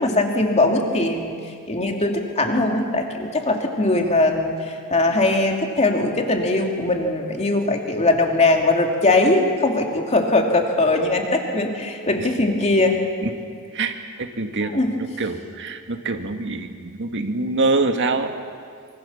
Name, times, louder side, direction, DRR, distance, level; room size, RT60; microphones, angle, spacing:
voice 1, 0.0-1.4 1.7-4.6 4.9-13.0 14.6-14.9, left 2 dB, 30° left, 2 dB, 2.7 m, -20 dB
voice 2, 13.7-18.3, right 3 dB, 55° right, 6 dB, 1.8 m, -25 dB
25.5 x 24.0 x 7.2 m, 2.2 s
head